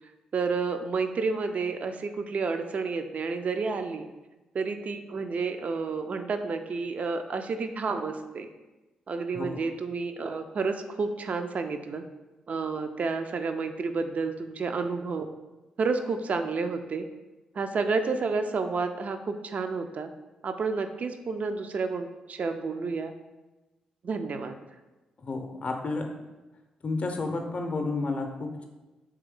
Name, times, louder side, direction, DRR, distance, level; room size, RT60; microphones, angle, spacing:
voice 1, 0.3-4.1 4.5-8.5 9.1-12.0 12.5-15.3 15.8-17.1 17.5-20.1 20.4-23.1 24.0-24.6, right 4 dB, 55° right, 8 dB, 0.4 m, -30 dB
voice 2, 25.2-26.1 26.8-28.7, left 3 dB, 45° left, 4 dB, 0.5 m, -31 dB
3.4 x 3.1 x 3.5 m, 1.1 s
hypercardioid pair, 40°, 3 cm